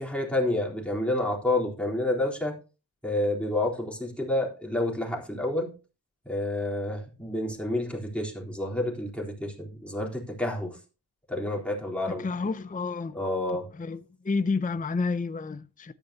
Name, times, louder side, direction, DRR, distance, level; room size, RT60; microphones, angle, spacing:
voice 1, 0.0-2.5 3.0-5.7 6.3-10.8 11.3-12.3 13.1-13.7, left 1 dB, 5° left, 3.8 m, -29 dB
voice 2, 12.2-13.1 13.8-14.0 14.2-15.9, left 4 dB, 20° left, 0.5 m, -29 dB
13.5 x 11.0 x 2.9 m
wide cardioid pair, 65°, 40 cm